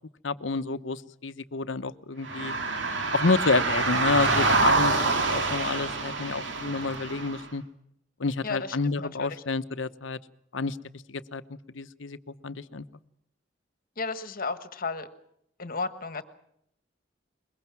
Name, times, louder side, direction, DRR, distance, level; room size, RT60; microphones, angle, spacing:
voice 1, 0.2-2.5 3.1-7.6 8.2-10.2 10.5-10.8 11.1-11.4 11.7-12.8, left 3 dB, 85° left, 13 dB, 0.9 m, -29 dB
sound 1, 2.2-7.4, right 3 dB, 70° right, 2.6 m, -26 dB
voice 2, 8.4-9.3 14.0-15.1 15.6-16.2, left 4 dB, 50° left, 11 dB, 1.5 m, -33 dB
23.0 x 22.0 x 6.0 m, 0.76 s
head